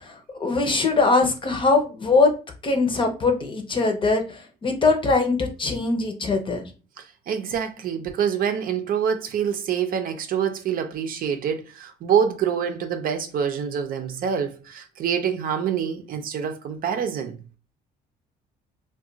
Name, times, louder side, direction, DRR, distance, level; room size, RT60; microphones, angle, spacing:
voice 1, 0.0-2.3 2.6-6.6, left 3 dB, 30° left, 0.7 m, -22 dB
voice 2, 7.0-17.4, right 8 dB, 55° right, 0.6 m, -26 dB
2.4 x 2.3 x 3.8 m
cardioid pair, 110°, 17 cm